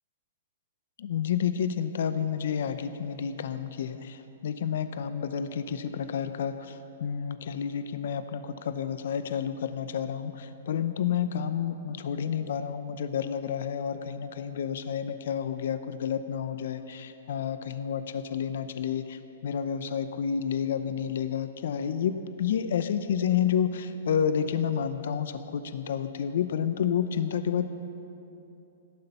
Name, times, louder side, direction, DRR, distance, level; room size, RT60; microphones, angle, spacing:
voice 1, 1.0-27.7, left 8 dB, 70° left, 11 dB, 0.7 m, -30 dB
18.0 x 12.5 x 5.5 m, 2.9 s
hypercardioid pair, 145°, 0 cm